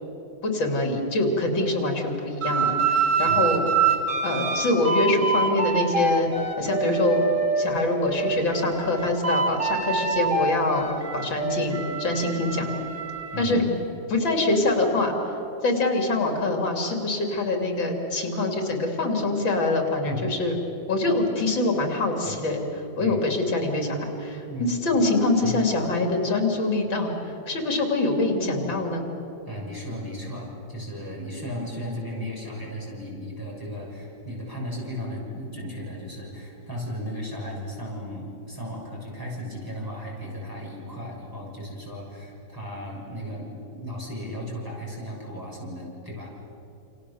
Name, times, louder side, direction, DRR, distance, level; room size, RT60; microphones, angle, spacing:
voice 1, 0.4-3.7 4.2-6.3 6.6-7.2 7.6-10.9 11.1-12.7 13.4-13.6 14.1-15.1 15.6-20.5 20.9-22.6 23.0-29.1, left 2 dB, 85° left, 2 dB, 3.9 m, -24 dB
sound 1, 2.4-7.7 8.1-13.4, right 4 dB, 40° right, 2.8 m, -26 dB
voice 2, 29.5-46.3, equal, 10° right, -4 dB, 6.8 m, -35 dB
28.5 x 28.5 x 7.2 m, 3.0 s
omnidirectional pair, 2.0 m